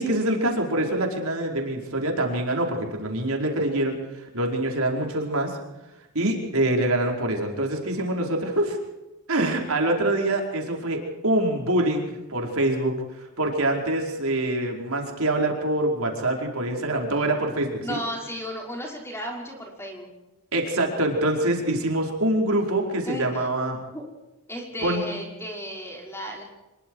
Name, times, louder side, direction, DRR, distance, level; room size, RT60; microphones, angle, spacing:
voice 1, 0.0-5.6 6.1-8.8 9.3-12.9 13.4-18.0 20.5-23.8 24.8-25.0, right 1 dB, 75° right, 1 dB, 5.0 m, -25 dB
voice 2, 17.8-20.1 23.1-23.3 23.9-24.0 24.5-26.4, equal, 10° left, 0 dB, 5.8 m, -34 dB
26.0 x 23.0 x 4.9 m, 1.0 s
head